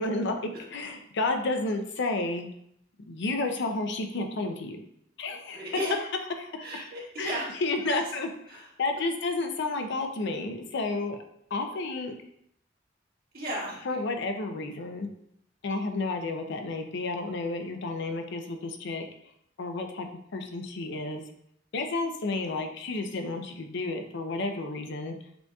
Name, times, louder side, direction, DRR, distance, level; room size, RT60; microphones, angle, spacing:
voice 1, 0.0-0.4 0.7-2.5 3.1-4.8 5.2-5.6 6.4-6.8 7.2-11.2 11.5-12.1 13.8-15.1 15.6-19.0 19.6-21.2 21.7-25.1, left 2 dB, 65° left, 5 dB, 0.5 m, -31 dB
voice 2, 5.5-5.9 6.6-7.5 7.8-8.0 8.5-8.6 11.7-11.8 13.3-13.8, equal, 55° right, -5 dB, 1.6 m, -34 dB
6.8 x 2.8 x 2.3 m, 0.71 s
head